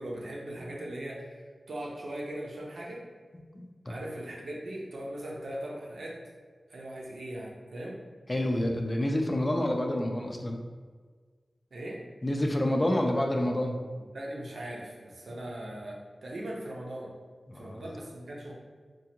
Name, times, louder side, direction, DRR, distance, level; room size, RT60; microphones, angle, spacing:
voice 1, 0.0-3.0 3.9-6.2 6.7-8.0 11.7-12.0 14.0-17.1 17.5-18.5, right 1 dB, 85° right, -3 dB, 0.8 m, -39 dB
voice 2, 3.5-3.9 8.3-10.6 12.2-13.8 17.5-17.8, left 1 dB, 25° left, 2 dB, 0.4 m, -28 dB
4.5 x 2.4 x 2.9 m, 1.5 s
wide cardioid pair, 90°, 0 cm